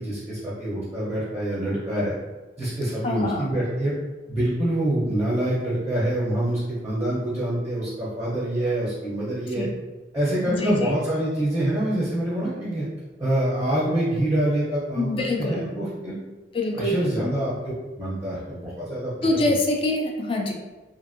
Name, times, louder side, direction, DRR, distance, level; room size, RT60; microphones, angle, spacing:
voice 1, 0.0-2.1 2.6-3.9 4.3-9.7 10.1-12.8 13.2-16.1 16.7-17.5 18.0-19.1 19.4-19.6, right 1 dB, 15° right, -8 dB, 0.6 m, -26 dB
voice 2, 3.0-3.5 9.5-9.7 10.5-10.9 15.0-15.7 16.5-17.3 19.2-20.5, left 2 dB, 30° left, 1 dB, 0.4 m, -25 dB
2.6 x 2.5 x 2.5 m, 1.2 s
head